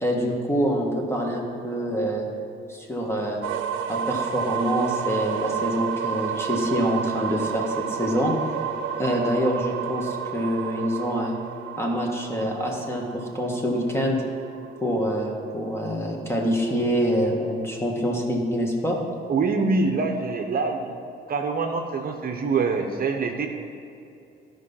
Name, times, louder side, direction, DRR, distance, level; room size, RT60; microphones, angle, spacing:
voice 1, 0.0-2.3 2.7-3.4 3.9-8.3 9.0-11.3 11.8-14.2 14.8-19.0, equal, 10° left, 0 dB, 1.8 m, -26 dB
sound 1, 3.4-15.2, right 8 dB, 80° right, 0.5 m, -31 dB
voice 2, 19.3-21.0 21.3-23.5, right 4 dB, 50° right, 4 dB, 0.8 m, -25 dB
12.5 x 5.4 x 5.6 m, 2.6 s
cardioid pair, 90°, 20 cm